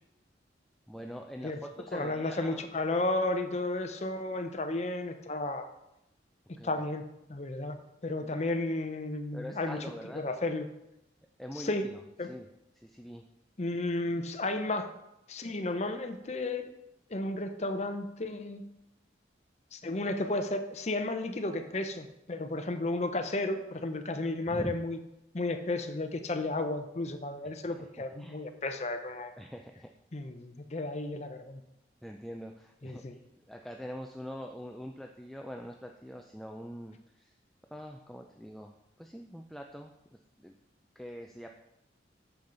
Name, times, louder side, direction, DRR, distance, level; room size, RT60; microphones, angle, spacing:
voice 1, 0.9-2.7 6.6-6.8 9.3-10.3 11.4-12.5 12.7-13.2 24.5-24.7 28.0-28.4 29.4-29.9 32.0-33.2 33.5-37.3 37.7-40.5 41.0-41.5, equal, ahead, 2 dB, 0.3 m, -44 dB
voice 2, 1.9-5.7 6.6-7.0 7.3-7.8 8.0-9.8 10.1-10.7 11.6-11.9 12.2-12.3 13.6-14.9 15.3-16.7 17.1-18.6 19.7-25.0 25.3-29.3 30.1-31.6 32.8-33.2, left 2 dB, 35° left, 8 dB, 0.7 m, -33 dB
8.8 x 7.0 x 3.9 m, 0.86 s
head